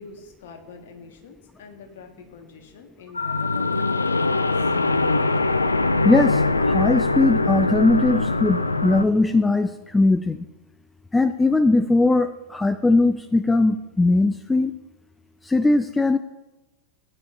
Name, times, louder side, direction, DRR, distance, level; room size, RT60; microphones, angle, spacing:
voice 1, 0.0-4.7, left 5 dB, 55° left, 4 dB, 1.6 m, -45 dB
sound 1, 3.1-9.0, left 3 dB, 80° left, 0.5 m, -22 dB
voice 2, 6.0-10.5 11.1-14.7 15.4-16.2, left 2 dB, 10° left, 12 dB, 0.4 m, -20 dB
sound 2, 7.9-10.4, right 1 dB, 20° right, 1.8 m, -45 dB
17.0 x 9.3 x 2.7 m, 1.1 s
figure-of-eight pair, 90°, 0 cm